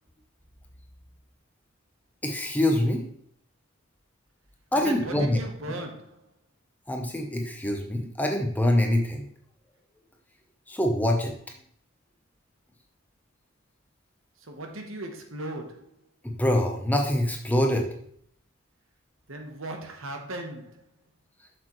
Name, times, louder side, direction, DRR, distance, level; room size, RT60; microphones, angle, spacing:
voice 1, 2.2-3.0 4.7-5.4 6.9-9.3 10.7-11.3 16.2-17.9, left 1 dB, 10° left, 0.8 m, -25 dB
voice 2, 4.7-6.3 14.4-16.0 19.3-20.9, right 1 dB, 70° right, 1.2 m, -38 dB
8.0 x 6.5 x 3.2 m
head